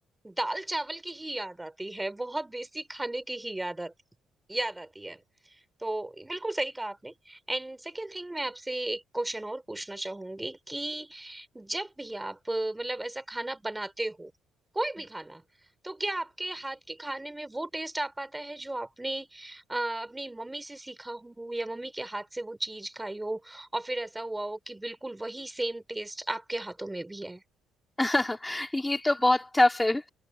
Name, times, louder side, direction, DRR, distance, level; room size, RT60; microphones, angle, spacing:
voice 1, 0.2-3.9 4.5-5.2 5.5-14.3 14.7-15.4 15.8-27.4, right 2 dB, 10° right, 4.2 m, -35 dB
voice 2, 28.0-30.1, left 2 dB, 10° left, 2.7 m, -25 dB
cardioid pair, 120°, 0 cm